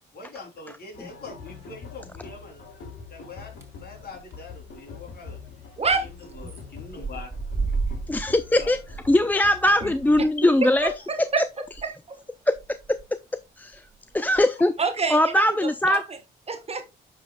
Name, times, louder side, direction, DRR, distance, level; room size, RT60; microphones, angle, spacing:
voice 1, 0.1-2.6 3.1-5.4 5.9-7.4 7.7-7.9 8.5-8.7, left 3 dB, 50° left, 3.2 m, -43 dB
sound 1, 0.9-10.3, left 5 dB, 80° left, 2.7 m, -44 dB
sound 2, 3.5-3.9 4.2-4.5 4.8-4.9 5.0-5.1 5.9-6.5 6.7-11.8 12.2-12.3 12.6-13.1 13.7-14.4, right 4 dB, 15° right, 1.9 m, -33 dB
voice 2, 5.8-6.1 9.8-9.9 10.6-10.9 11.3-11.4 11.8-12.2 14.8-15.3 15.8-16.0 16.5-16.9, right 4 dB, 30° right, 1.2 m, -26 dB
voice 3, 8.1-8.8 9.1-10.9 11.2-11.5 12.5-12.6 12.9-13.0 13.6-13.8 14.1-14.7 15.1-16.0, left 1 dB, 10° left, 0.4 m, -20 dB
11.0 x 5.1 x 2.2 m
cardioid pair, 90°, 20 cm